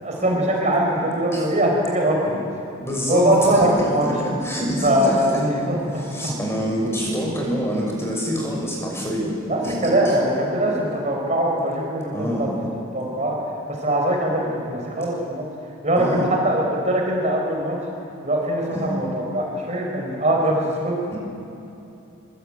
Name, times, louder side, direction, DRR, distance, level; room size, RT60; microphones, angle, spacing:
voice 1, 0.0-2.4 3.1-4.0 4.8-6.3 9.4-12.6 12.9-13.4 13.7-15.5 15.8-17.8 18.2-20.9, right 1 dB, 35° right, 0 dB, 4.7 m, -22 dB
voice 2, 2.8-5.4 5.9-9.3 9.6-10.1 12.1-12.5 16.0-16.3 18.7-18.9 21.1-21.2, equal, 10° left, -2 dB, 6.2 m, -26 dB
25.0 x 24.5 x 8.8 m, 2.8 s
head